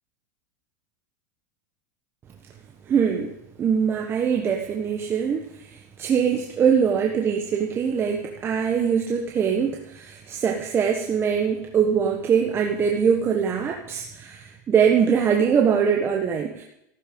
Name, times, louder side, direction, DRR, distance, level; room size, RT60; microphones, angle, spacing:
voice 1, 2.9-3.3 3.6-16.6, right 7 dB, 25° right, 1 dB, 1.3 m, -22 dB
14.0 x 13.0 x 5.3 m, 0.82 s
supercardioid pair, 130°, 10 cm